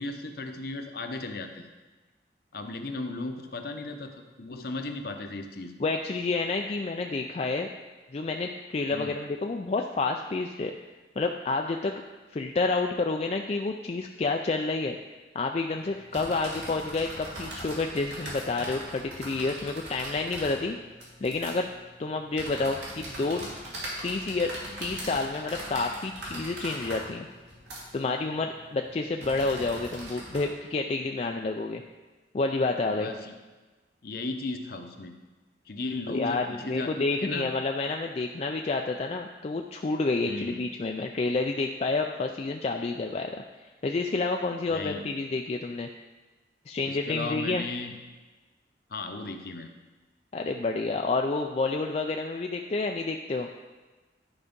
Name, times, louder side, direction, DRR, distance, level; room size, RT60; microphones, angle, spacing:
voice 1, 0.0-1.7 2.5-5.8 8.9-9.1 32.9-33.3 34.0-35.2 35.7-37.5 40.3-40.6 44.7-45.0 46.8-48.0 48.9-49.7, left 3 dB, 60° left, 5 dB, 0.8 m, -36 dB
voice 2, 5.8-7.7 8.1-10.7 11.2-12.0 12.3-15.0 15.3-20.8 21.2-21.7 22.0-23.4 24.0-24.5 24.8-27.3 27.9-31.8 32.3-33.1 36.1-43.3 43.6-45.9 46.7-47.6 50.3-53.5, left 3 dB, 35° left, 3 dB, 0.4 m, -29 dB
sound 1, 15.7-30.4, right 1 dB, 85° right, 2.8 m, -41 dB
11.0 x 4.8 x 5.2 m, 1.3 s
head